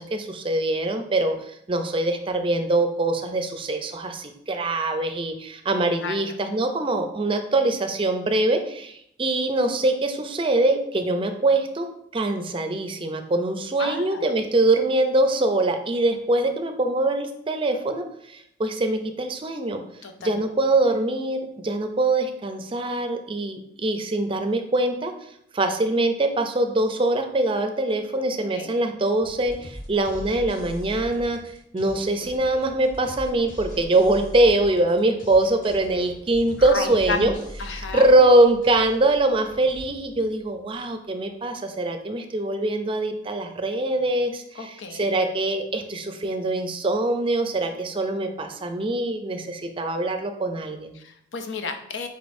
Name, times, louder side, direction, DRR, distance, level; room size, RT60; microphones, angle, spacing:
voice 1, 0.0-1.3 1.7-11.9 12.1-19.8 20.2-25.1 25.5-31.4 31.7-37.3 37.9-51.0, right 2 dB, 30° right, 6 dB, 0.5 m, -23 dB
voice 2, 13.8-14.3 20.0-20.4 28.4-28.7 36.6-38.1 44.6-45.1 50.9-52.1, left 4 dB, 90° left, 6 dB, 0.6 m, -32 dB
sound 1, 29.2-40.9, equal, 45° left, 1.4 m, -41 dB
5.1 x 4.0 x 2.6 m, 0.72 s
head